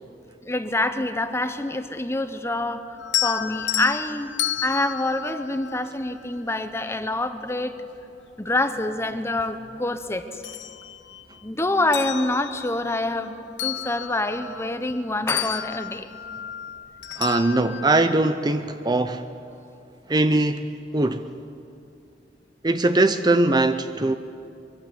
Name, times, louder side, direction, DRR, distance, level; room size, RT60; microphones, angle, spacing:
voice 1, 0.4-4.3 4.6-7.8 8.4-10.4 11.4-16.1, left 2 dB, 15° left, 9 dB, 1.1 m, -26 dB
sound 1, 3.0-6.3 8.0-8.1 8.6-9.8 10.2-11.4 11.8-15.0 15.3-17.9, left 11 dB, 90° left, 0.8 m, -32 dB
voice 2, 17.2-19.3 20.1-20.7 20.9-21.3 22.6-24.1, right 2 dB, 25° right, 9 dB, 0.6 m, -21 dB
23.5 x 23.0 x 8.2 m, 2.7 s
head